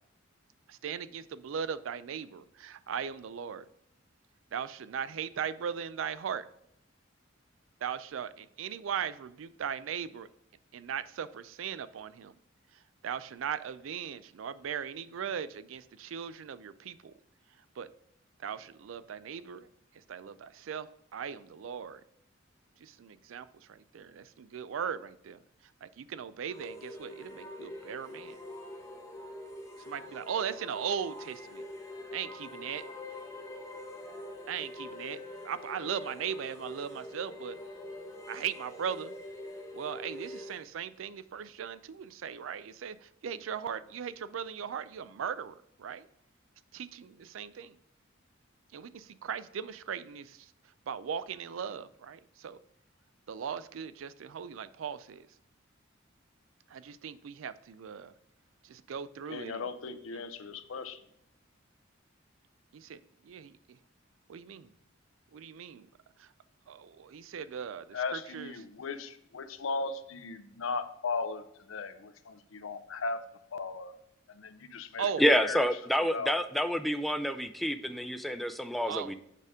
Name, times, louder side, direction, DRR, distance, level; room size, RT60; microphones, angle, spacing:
voice 1, 0.7-3.7 4.5-6.4 7.8-10.3 10.7-12.4 12.7-17.1 17.8-17.9 18.4-19.7 19.9-22.0 22.8-28.4 29.8-31.7 32.1-32.8 34.5-37.6 38.3-39.1 39.7-46.1 46.7-47.8 48.7-50.5 50.9-52.6 53.3-55.3 56.7-58.1 58.6-59.7 60.1-60.2 62.7-63.8 64.3-64.7 65.3-65.9 66.2-66.3 66.7-68.6 75.0-75.3 78.9-79.1, right 7 dB, 75° right, 15 dB, 0.4 m, -38 dB
sound 1, 26.4-40.6, left 1 dB, 15° left, 1.2 m, -44 dB
voice 2, 59.3-61.0 67.9-73.2 73.5-73.9 74.3-75.0 75.4-75.7 76.1-76.3, left 4 dB, 85° left, 10 dB, 0.6 m, -37 dB
voice 3, 75.2-79.2, equal, ahead, 8 dB, 0.4 m, -28 dB
6.6 x 5.0 x 3.5 m, 0.78 s
head